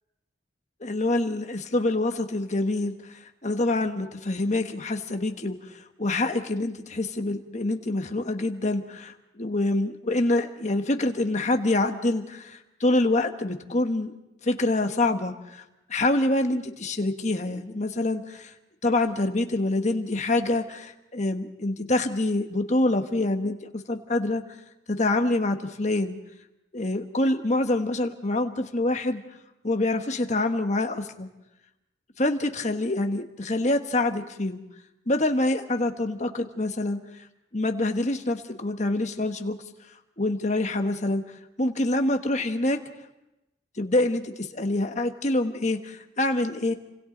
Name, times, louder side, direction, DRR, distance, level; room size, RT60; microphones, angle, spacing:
voice 1, 0.8-14.1 14.4-15.6 15.9-18.5 18.8-24.4 24.9-26.2 26.7-29.2 29.6-31.3 32.2-34.6 35.1-37.0 37.5-39.6 40.2-41.2 41.6-42.8 43.8-46.7, left 2 dB, 40° left, 6 dB, 1.3 m, -26 dB
28.5 x 25.5 x 3.9 m, 0.92 s
head